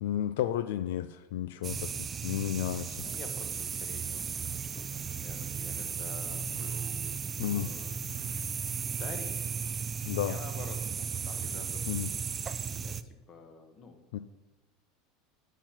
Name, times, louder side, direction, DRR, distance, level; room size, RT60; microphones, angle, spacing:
voice 1, 0.0-3.1 7.4-7.7 10.0-10.4 11.9-12.1 14.1-14.2, left 11 dB, 80° left, 13 dB, 0.3 m, -32 dB
sound 1, 1.6-13.0, right 6 dB, 25° right, 0.4 m, -35 dB
voice 2, 3.0-8.0 8.7-9.4 10.3-12.3 12.7-14.0, left 4 dB, 35° left, 5 dB, 1.3 m, -49 dB
8.8 x 4.5 x 5.8 m, 1.1 s
supercardioid pair, 125°, 0 cm